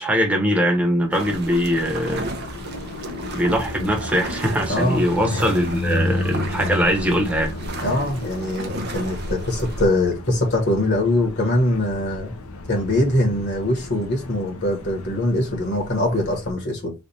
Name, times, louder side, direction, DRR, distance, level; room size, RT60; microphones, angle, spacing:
voice 1, 0.0-2.3 3.3-7.5, equal, 5° right, 1.1 m, -21 dB
sound 1, 1.1-9.9, right 2 dB, 50° right, 0.7 m, -33 dB
Car passing by, 1.6-16.5, left 2 dB, 85° left, 0.8 m, -33 dB
voice 2, 4.7-5.4 7.8-12.3 12.7-16.9, left 1 dB, 50° left, 1.3 m, -22 dB
3.3 x 2.5 x 4.1 m
head